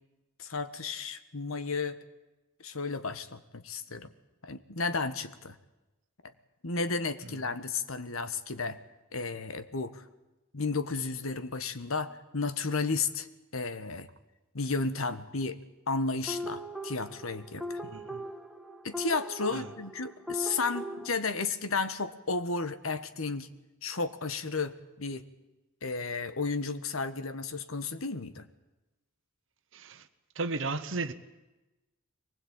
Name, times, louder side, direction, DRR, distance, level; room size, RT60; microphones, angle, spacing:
voice 1, 0.4-2.0 2.6-4.1 4.4-5.6 6.6-8.8 9.1-10.0 10.5-13.3 13.5-14.1 14.5-15.6 15.9-17.8 18.8-23.5 23.8-25.3 25.8-28.4, left 4 dB, 85° left, 1.4 m, -33 dB
voice 2, 7.2-7.5 17.8-18.3 19.5-19.7 29.7-30.1 30.3-31.1, right 3 dB, 65° right, 1.1 m, -35 dB
sound 1, 16.3-21.1, equal, ahead, 1.7 m, -39 dB
23.0 x 20.0 x 9.0 m
head